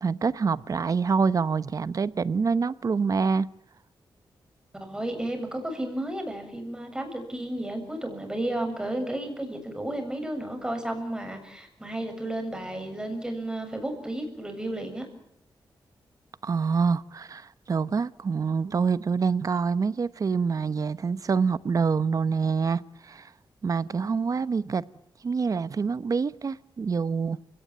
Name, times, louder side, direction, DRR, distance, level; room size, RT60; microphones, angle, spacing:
voice 1, 0.0-3.5 16.4-23.3 23.6-24.8 25.2-27.4, right 5 dB, 45° right, 1.0 m, -26 dB
voice 2, 4.7-15.1, right 1 dB, 10° right, 7.1 m, -32 dB
30.0 x 18.0 x 9.1 m
wide cardioid pair, 135°, 8 cm